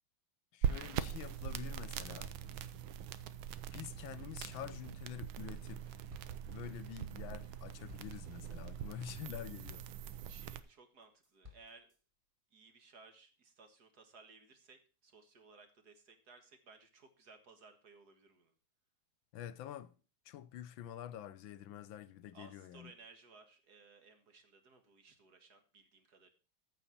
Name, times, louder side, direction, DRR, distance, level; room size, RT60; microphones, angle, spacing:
voice 1, 0.5-2.3 3.7-5.9 6.5-9.9 19.3-20.0 20.2-22.9, left 11 dB, 75° left, 1.4 m, -47 dB
sound 1, 0.6-10.6, right 9 dB, 80° right, 1.6 m, -42 dB
sound 2, 5.4-5.8 6.1-10.6 11.0-12.0, left 5 dB, 15° right, 1.7 m, -61 dB
voice 2, 10.3-11.9 12.5-18.5 22.3-26.3, right 4 dB, 55° right, 2.0 m, -60 dB
14.5 x 5.7 x 5.8 m
omnidirectional pair, 2.2 m